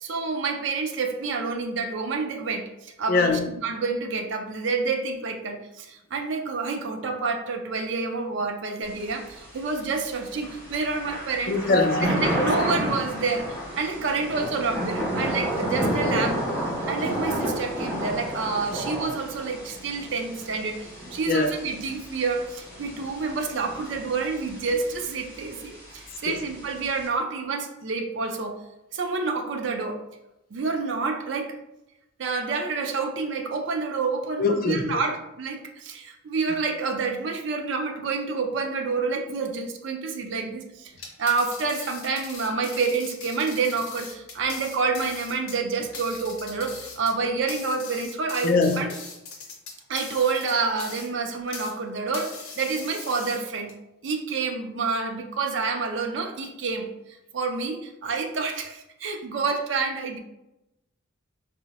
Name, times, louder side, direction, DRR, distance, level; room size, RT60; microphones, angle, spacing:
voice 1, 0.0-11.5 12.1-16.4 16.9-28.6 28.9-30.0 30.5-31.5 32.2-40.9 41.2-48.9 49.9-53.7 54.0-56.9 57.3-60.2, right 4 dB, 60° right, 4 dB, 0.4 m, -28 dB
voice 2, 3.1-3.5 11.5-12.5 21.3-21.5 26.3-26.4 34.4-35.0 48.4-48.8, left 3 dB, 45° left, 5 dB, 0.3 m, -22 dB
Thunder / Rain, 8.8-27.1, equal, 10° left, 1.3 m, -31 dB
sound 1, 40.9-51.8 52.1-53.7, left 4 dB, 80° left, 0.6 m, -41 dB
3.7 x 2.0 x 2.8 m, 0.91 s
head